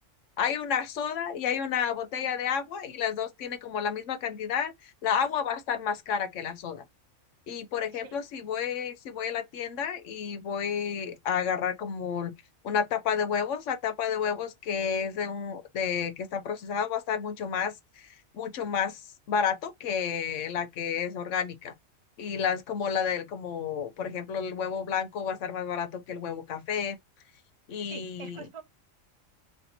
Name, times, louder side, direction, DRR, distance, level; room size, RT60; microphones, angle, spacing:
voice 1, 0.4-6.8 7.5-12.3 12.6-18.1 18.3-19.0 19.3-21.7 22.2-27.0 27.7-28.5, left 7 dB, 70° left, 1.0 m, -31 dB
voice 2, 27.8-28.6, right 6 dB, 35° right, 0.6 m, -44 dB
3.4 x 2.8 x 4.0 m
omnidirectional pair, 1.4 m